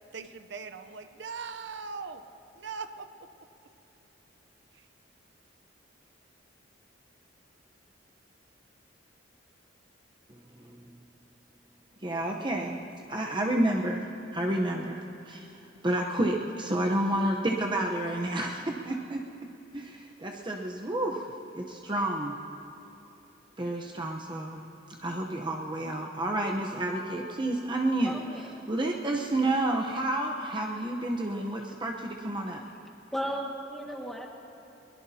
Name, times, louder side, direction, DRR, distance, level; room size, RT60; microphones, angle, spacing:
voice 1, 0.1-2.2 2.5-3.1 4.7-4.9, right 5 dB, 65° right, 8 dB, 0.7 m, -40 dB
voice 2, 12.0-12.8 13.1-15.5 15.8-19.2 19.7-21.3 21.5-22.3 23.6-24.6 25.0-32.6, right 1 dB, 25° right, 0 dB, 0.9 m, -30 dB
voice 3, 28.0-28.5 31.7-31.8 33.1-34.3, equal, ahead, -1 dB, 1.8 m, -35 dB
23.0 x 21.5 x 2.8 m, 3.0 s
head